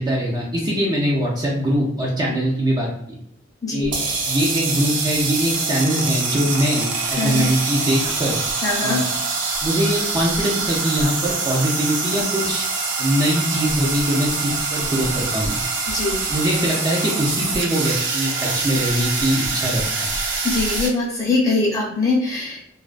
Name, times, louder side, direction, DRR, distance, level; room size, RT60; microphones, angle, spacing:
voice 1, 0.0-3.2 3.7-3.9 4.3-8.4 8.8-9.1 9.6-12.7 13.0-15.6 16.3-20.1, equal, 20° right, -4 dB, 0.4 m, -22 dB
sound 1, 3.8-20.9, right 4 dB, 70° right, 0.6 m, -25 dB
voice 2, 7.2-7.5 8.6-9.0 15.9-16.2 20.4-22.6, left 3 dB, 20° left, -5 dB, 0.7 m, -22 dB
2.3 x 2.2 x 2.4 m, 0.73 s
head